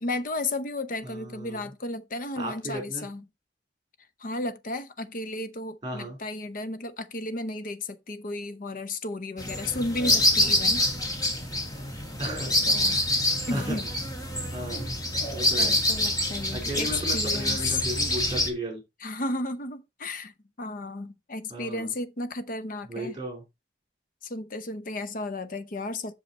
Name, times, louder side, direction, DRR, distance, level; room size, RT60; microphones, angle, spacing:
voice 1, 0.0-3.2 4.2-10.9 12.7-13.0 13.5-13.9 15.6-17.8 19.0-23.2 24.2-26.1, left 2 dB, 50° left, 0.8 m, -33 dB
voice 2, 1.0-1.7 2.4-3.1 5.8-6.2 12.2-12.5 12.8-13.1 13.5-13.8 14.5-15.0 15.3-15.8 16.5-18.8 21.5-21.9 22.9-23.4, right 1 dB, 25° right, 3.9 m, -35 dB
sound 1, 9.4-18.5, left 1 dB, 20° left, 2.0 m, -26 dB
7.9 x 6.4 x 4.2 m
head